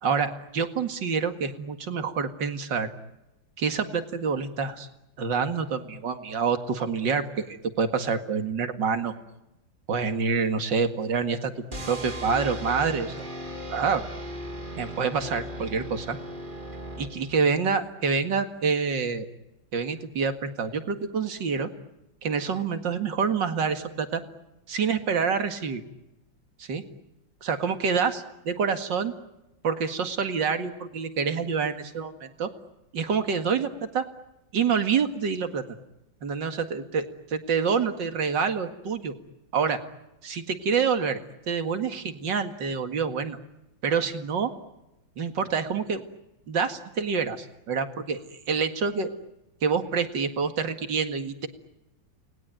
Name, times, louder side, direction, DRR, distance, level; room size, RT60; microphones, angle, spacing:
voice 1, 0.0-2.9 3.6-4.9 5.2-9.1 9.9-11.5 11.9-13.3 13.7-14.0 14.7-16.2 17.0-19.3 19.7-21.7 22.2-24.2 24.7-25.8 26.6-26.8 27.4-29.1 29.6-32.5 32.9-34.0 34.5-35.6 36.2-39.1 39.5-39.8 40.2-43.4 43.8-44.5 45.2-46.0 46.5-48.2 48.5-49.1 49.6-51.5, right 5 dB, 70° right, 7 dB, 2.6 m, -27 dB
sound 1, 11.7-17.6, equal, 25° right, 3.0 m, -37 dB
29.0 x 20.5 x 9.1 m, 0.93 s
omnidirectional pair, 2.1 m